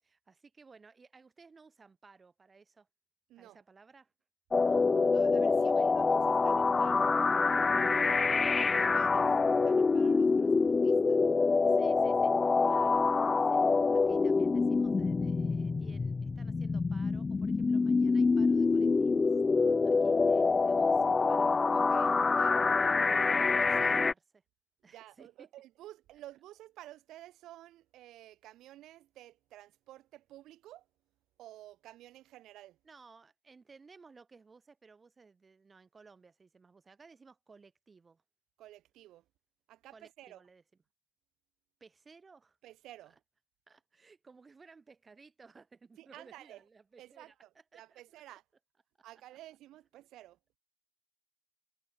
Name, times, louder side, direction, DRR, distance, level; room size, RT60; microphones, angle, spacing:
voice 1, 0.0-2.9 3.4-4.1 5.7-6.0 11.7-12.3 12.7-19.4 19.8-22.3 23.4-24.2 24.8-25.5 32.8-38.2 39.9-40.6 41.8-42.6 43.1-43.2 43.7-48.2, right 4 dB, 15° right, 7.0 m, -58 dB
sound 1, 4.5-24.1, left 4 dB, 15° left, 0.4 m, -26 dB
voice 2, 4.6-7.2 7.4-9.3 9.6-11.2 12.6-13.0 21.7-22.6 23.3-24.0 24.8-30.9 31.4-32.8 38.6-39.2 39.7-40.4 42.6-43.2 46.0-46.6 47.0-48.4 49.0-50.4, right 14 dB, 50° right, 7.0 m, -53 dB
cardioid pair, 140°, 0 cm